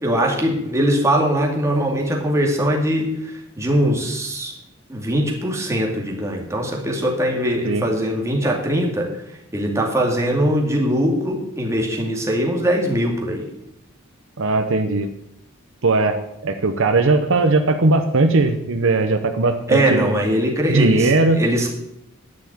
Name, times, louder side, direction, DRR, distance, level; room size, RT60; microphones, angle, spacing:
voice 1, 0.0-4.5 4.9-9.1 9.5-13.5 19.7-21.7, equal, 15° right, -1 dB, 2.3 m, -21 dB
voice 2, 14.4-15.1 15.8-20.1 20.7-21.4, right 3 dB, 65° right, 7 dB, 0.8 m, -18 dB
10.5 x 5.8 x 8.6 m, 0.82 s
head